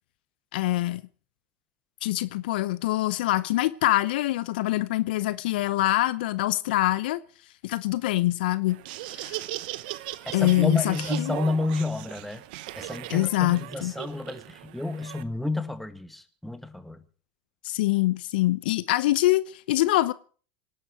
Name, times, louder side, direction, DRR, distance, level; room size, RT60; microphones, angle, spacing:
voice 1, 0.5-1.0 2.0-7.2 7.6-8.8 9.1-9.4 10.3-11.4 13.1-13.9 17.6-20.1, left 17 dB, 75° left, 0.8 m, -24 dB
Laughter, 8.7-15.2, right 17 dB, 70° right, 0.9 m, -38 dB
voice 2, 10.3-12.4 12.8-17.0, left 3 dB, 5° left, 2.1 m, -30 dB
25.0 x 11.5 x 4.8 m
hypercardioid pair, 90°, 5 cm